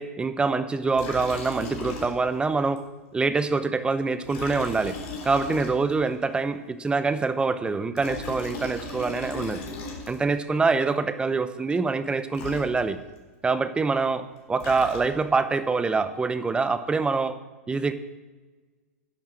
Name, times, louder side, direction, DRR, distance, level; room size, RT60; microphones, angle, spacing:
voice 1, 0.0-2.8 3.1-5.0 5.2-9.6 10.1-13.0 13.4-17.4 17.7-17.9, right 4 dB, 10° right, 12 dB, 0.9 m, -25 dB
Liquid, 0.9-2.5 2.8-2.9 4.2-6.1 7.8-10.4 12.0-12.1 12.3-13.2 14.3-15.4, left 3 dB, 50° left, 4.0 m, -37 dB
10.5 x 10.5 x 6.3 m, 1.3 s
hypercardioid pair, 110°, 8 cm